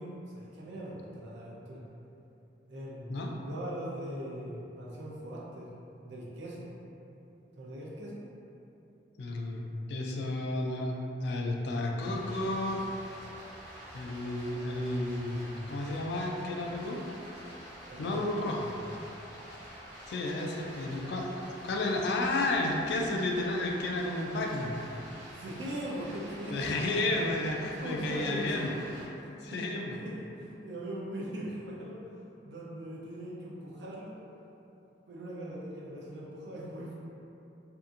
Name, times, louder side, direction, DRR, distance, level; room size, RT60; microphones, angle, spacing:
voice 1, 0.0-1.8 2.7-3.1 3.4-5.7 6.0-6.7 7.6-8.2 17.9-18.4 25.2-27.3 27.8-28.8 29.2-32.1 32.4-34.2 35.1-37.0, right 1 dB, 75° right, -5 dB, 0.5 m, -40 dB
voice 2, 9.2-9.6 9.9-10.9 11.2-12.8 13.9-17.0 18.0-18.7 20.1-21.3 21.6-24.8 26.5-28.7 29.4-30.0, left 2 dB, 65° left, 0 dB, 0.3 m, -32 dB
Stream, 12.0-29.0, equal, 40° right, 0.9 m, -48 dB
2.7 x 2.5 x 2.4 m, 2.8 s
head